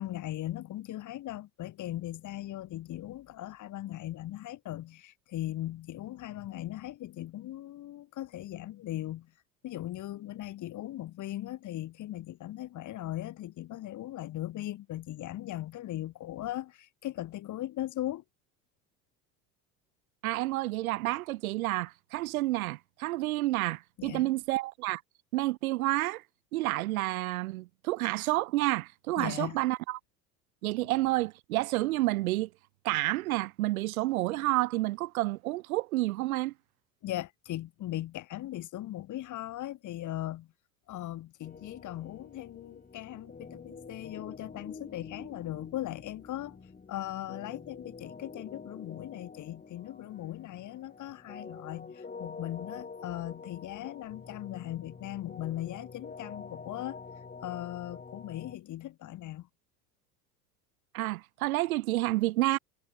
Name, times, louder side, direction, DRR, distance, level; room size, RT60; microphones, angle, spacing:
voice 1, 0.0-9.3 9.6-18.2 24.0-24.3 29.2-29.6 37.0-40.5 40.9-46.6 46.9-57.0 57.4-59.5, left 14 dB, 40° left, 2.0 m, -38 dB
voice 2, 20.2-25.0 25.3-26.2 26.5-30.0 30.6-32.5 32.8-36.5 60.9-62.6, right 18 dB, 65° right, 1.0 m, -29 dB
sound 1, 41.4-58.5, left 4 dB, 20° left, 5.3 m, -47 dB
figure-of-eight pair, 75°, 46 cm